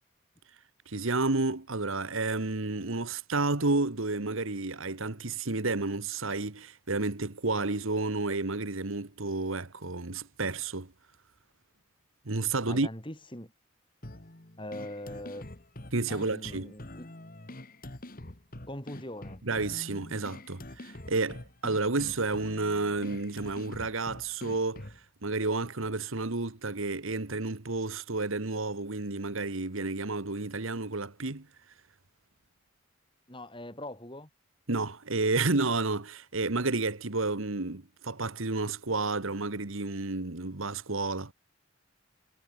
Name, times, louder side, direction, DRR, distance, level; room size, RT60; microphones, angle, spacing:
voice 1, 0.9-10.9 12.2-12.9 15.9-16.7 19.4-24.8 25.2-31.5 34.7-41.3, right 3 dB, 70° right, 1.5 m, -31 dB
voice 2, 12.7-13.5 14.6-15.5 16.1-17.1 18.7-19.4 33.3-34.3, left 1 dB, 25° left, 5.3 m, -41 dB
sound 1, 14.0-25.0, left 1 dB, 40° left, 1.9 m, -45 dB
head